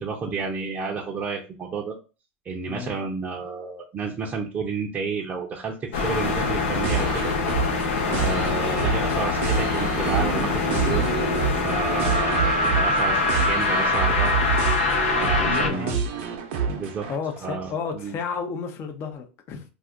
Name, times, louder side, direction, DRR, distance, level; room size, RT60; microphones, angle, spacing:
voice 1, 0.0-2.0 2.4-7.3 8.0-11.1 11.5-14.4 15.2-16.0 16.7-17.1 17.4-18.2, right 5 dB, 25° right, -2 dB, 0.6 m, -31 dB
sound 1, 5.9-15.7, left 3 dB, 80° left, 0.7 m, -24 dB
sound 2, 6.8-17.2, right 6 dB, 70° right, 0.7 m, -28 dB
voice 2, 15.4-16.0 17.1-19.6, left 6 dB, 40° left, 5 dB, 0.6 m, -32 dB
2.5 x 2.4 x 3.6 m, 0.33 s
hypercardioid pair, 110°, 6 cm